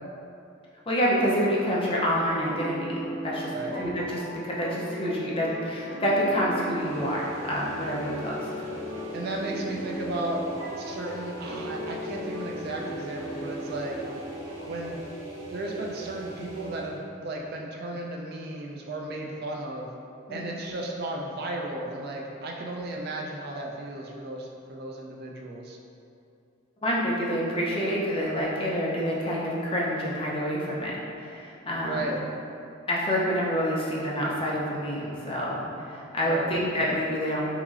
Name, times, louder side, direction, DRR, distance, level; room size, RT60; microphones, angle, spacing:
voice 1, 0.9-3.5 3.8-8.7 20.3-20.7 26.8-32.1 32.9-37.4, equal, 25° left, -5 dB, 0.5 m, -28 dB
sound 1, 1.2-14.9, equal, 10° right, 1.3 m, -38 dB
sound 2, 6.6-17.0, right 1 dB, 80° right, 0.7 m, -41 dB
voice 2, 9.1-10.4 10.8-14.0 14.6-15.0 15.5-19.9 20.3-25.8 31.8-32.2 36.2-36.6, right 2 dB, 50° right, -1 dB, 0.3 m, -34 dB
3.8 x 2.9 x 2.4 m, 2.6 s
head